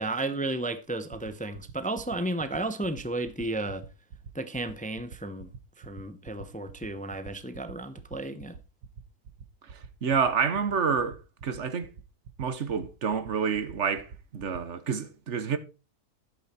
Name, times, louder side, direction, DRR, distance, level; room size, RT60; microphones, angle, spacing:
voice 1, 0.0-3.9 4.3-5.5 5.8-8.6, right 2 dB, 10° left, 0.5 m, -33 dB
sound 1, 0.9-14.6, right 6 dB, 90° right, 1.7 m, -45 dB
voice 2, 9.7-11.9 12.4-15.6, right 6 dB, 50° right, 1.3 m, -28 dB
11.5 x 8.5 x 4.3 m
omnidirectional pair, 1.7 m